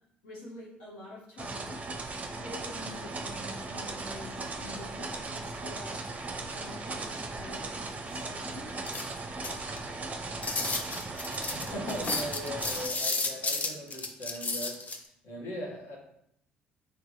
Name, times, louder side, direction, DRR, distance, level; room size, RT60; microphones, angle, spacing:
voice 1, 0.2-6.1 6.5-8.8, left 1 dB, 80° left, -7 dB, 1.1 m, -47 dB
sound 1, 1.4-12.9, right 3 dB, 30° right, 0.6 m, -38 dB
sound 2, 8.8-9.9 10.4-15.0, left 3 dB, 35° left, 0.6 m, -32 dB
voice 2, 11.5-16.0, equal, 60° left, -2 dB, 1.2 m, -39 dB
3.7 x 3.4 x 3.0 m, 0.76 s
hypercardioid pair, 55°, 5 cm